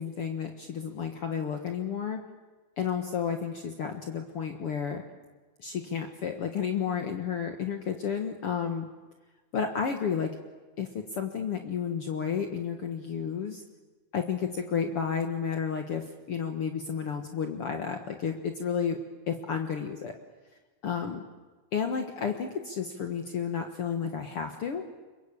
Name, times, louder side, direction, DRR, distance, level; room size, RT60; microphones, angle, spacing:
voice 1, 0.0-2.2 2.8-5.0 5.6-8.9 9.5-10.3 10.8-13.6 14.1-19.0 19.3-20.1 20.8-21.2 21.7-24.9, left 7 dB, 55° left, 4 dB, 2.3 m, -31 dB
27.0 x 23.5 x 8.7 m, 1.3 s
omnidirectional pair, 3.4 m